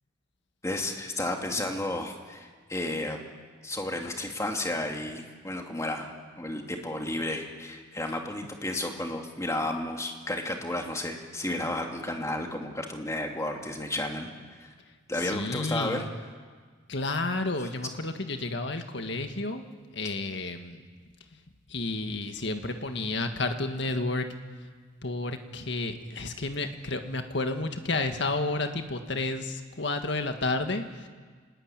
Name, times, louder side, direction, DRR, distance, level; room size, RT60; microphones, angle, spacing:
voice 1, 0.6-3.2 3.6-6.1 6.4-14.3 14.6-14.7 15.1-16.0, left 1 dB, 15° left, 2 dB, 2.5 m, -32 dB
voice 2, 15.1-16.1 16.9-19.6 19.9-20.8 21.7-24.3 25.0-31.1, left 2 dB, 65° left, 6 dB, 1.9 m, -31 dB
26.0 x 20.5 x 9.1 m, 1.6 s
head